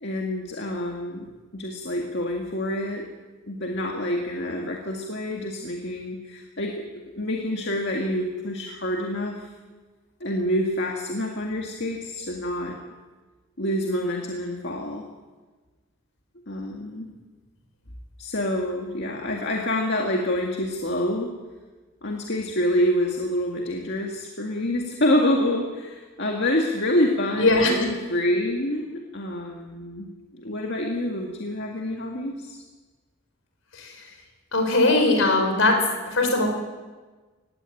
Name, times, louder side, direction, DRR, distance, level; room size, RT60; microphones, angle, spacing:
voice 1, 0.0-3.1 3.5-9.5 10.2-12.8 13.6-15.1 16.5-17.1 18.2-21.3 22.0-32.6, left 1 dB, 55° left, 1 dB, 2.0 m, -27 dB
voice 2, 27.4-27.9 33.8-33.9 34.5-35.8 36.1-36.5, left 2 dB, 70° left, 4 dB, 5.0 m, -20 dB
19.0 x 16.0 x 9.2 m, 1.3 s
head